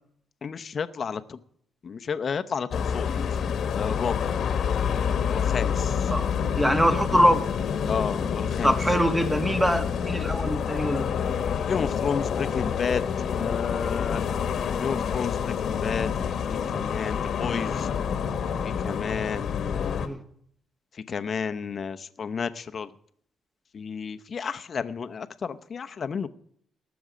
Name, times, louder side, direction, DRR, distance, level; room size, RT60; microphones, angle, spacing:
voice 1, 0.4-1.4 1.8-3.3 3.7-4.3 5.3-6.1 7.9-8.7 11.7-13.0 13.3-14.2 14.8-17.9 18.6-20.0 21.1-22.9 23.7-26.3, left 6 dB, 45° left, 0.8 m, -32 dB
sound 1, 2.7-20.1, left 7 dB, 65° left, 1.3 m, -28 dB
voice 2, 6.6-7.4 8.6-11.1 20.0-20.2, equal, 5° right, 1.4 m, -23 dB
19.0 x 7.0 x 5.1 m
cardioid pair, 90°, 0 cm